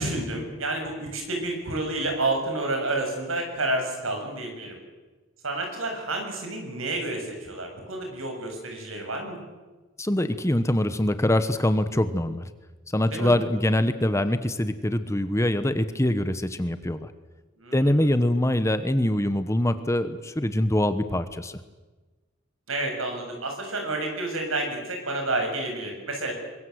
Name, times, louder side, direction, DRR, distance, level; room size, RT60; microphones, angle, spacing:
voice 1, 0.0-4.8 5.4-9.4 13.1-13.3 17.6-18.1 22.7-26.3, right 2 dB, 90° right, 3 dB, 7.2 m, -30 dB
voice 2, 10.0-12.5 12.9-17.1 17.7-21.6, left 1 dB, 15° left, 11 dB, 1.0 m, -24 dB
25.0 x 22.0 x 8.1 m, 1.2 s
head